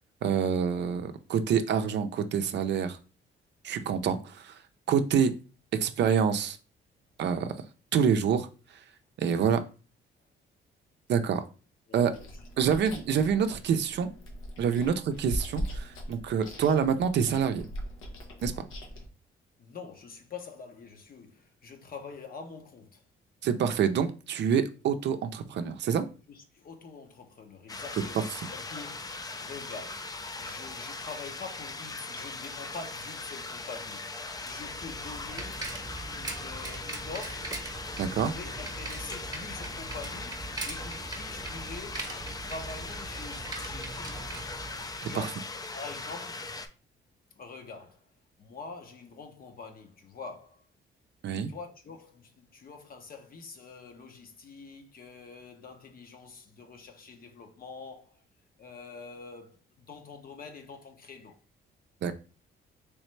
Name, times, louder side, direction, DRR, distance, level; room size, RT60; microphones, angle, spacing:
voice 1, 0.2-3.0 3.6-4.6 4.9-5.3 5.7-6.6 7.2-7.5 7.9-8.5 9.2-9.6 11.1-11.4 11.9-12.1 12.6-14.1 14.6-17.7 18.4-18.5 23.4-26.1 28.1-28.2 38.0-38.3 45.0-45.2 51.2-51.5 62.0-62.1, right 7 dB, 60° right, 0.5 m, -26 dB
voice 2, 11.9-12.3 14.7-15.0 19.6-23.0 26.3-35.7 36.1-37.6 37.9-42.1 42.4-44.4 45.1-45.4 45.7-46.5 47.4-48.0 48.4-50.6 51.3-58.2 58.6-61.4, left 4 dB, 45° left, 0.8 m, -45 dB
Chewing mastication, 12.1-19.1, equal, 85° left, 0.9 m, -40 dB
sound 1, 27.7-46.7, left 3 dB, 20° left, 0.4 m, -40 dB
Bicycle, 34.4-45.2, right 2 dB, 20° right, 0.9 m, -41 dB
3.2 x 3.2 x 3.1 m
cardioid pair, 90°, 20 cm